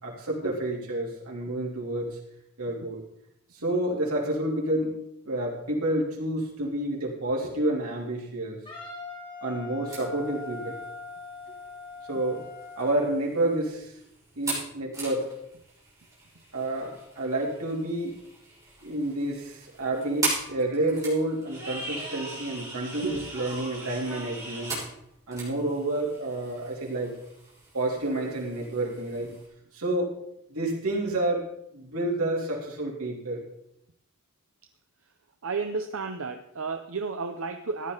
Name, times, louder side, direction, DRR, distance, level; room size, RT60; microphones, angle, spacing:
voice 1, 0.0-2.2 2.6-3.0 3.5-5.0 5.2-8.6 9.4-10.8 12.1-12.4 12.8-13.9 14.3-15.3 16.5-18.2 18.8-24.8 25.3-27.2 27.7-29.3 29.7-30.2 30.5-31.4 31.7-33.5, right 1 dB, 90° right, -2 dB, 3.4 m, -29 dB
Wind instrument woodwind instrument, 8.7-13.1, left 4 dB, 20° left, 2.7 m, -41 dB
sound 1, 9.9-29.4, right 2 dB, 15° right, 6.3 m, -39 dB
voice 2, 35.4-37.9, right 4 dB, 70° right, 6 dB, 0.7 m, -32 dB
15.0 x 10.5 x 4.0 m, 0.76 s
head